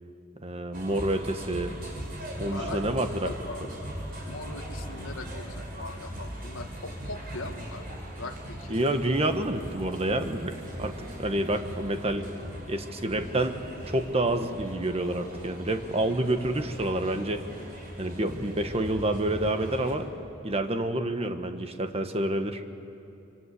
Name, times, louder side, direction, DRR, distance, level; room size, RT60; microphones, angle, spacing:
voice 1, 0.4-1.8 2.4-3.3 8.7-10.5 10.8-10.9 11.2-12.3 12.7-13.6 13.9-17.4 18.0-20.1 20.4-22.6, right 1 dB, 30° right, 7 dB, 1.4 m, -28 dB
sound 1, 0.7-19.9, equal, 45° right, 5.8 m, -39 dB
voice 2, 2.4-3.9 4.2-7.8 8.2-8.8, left 2 dB, 75° left, 5 dB, 1.4 m, -41 dB
26.0 x 24.5 x 8.4 m, 2.8 s
head